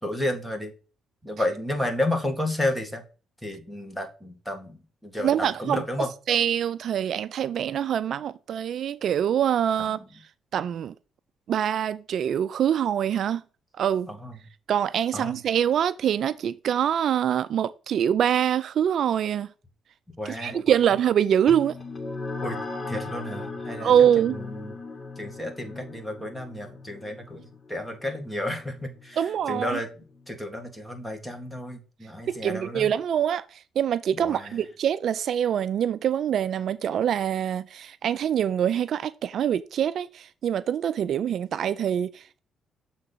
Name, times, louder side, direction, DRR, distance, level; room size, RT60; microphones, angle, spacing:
voice 1, 0.0-0.7 1.2-3.0 3.4-4.8 5.0-6.1 9.8-10.0 14.1-14.4 15.1-15.4 20.2-20.6 22.4-22.6 22.9-24.7 25.2-29.9 30.3-32.9 34.1-34.6, left 1 dB, 5° left, 1.7 m, -32 dB
voice 2, 5.2-5.8 6.3-10.0 10.5-10.9 11.5-13.4 13.8-14.1 14.7-19.5 20.3-21.8 23.8-24.4 29.2-29.8 32.3-42.4, right 9 dB, 65° right, 0.3 m, -24 dB
sound 1, 21.5-30.3, left 3 dB, 30° left, 1.5 m, -38 dB
7.3 x 3.8 x 4.0 m
cardioid pair, 90°, 0 cm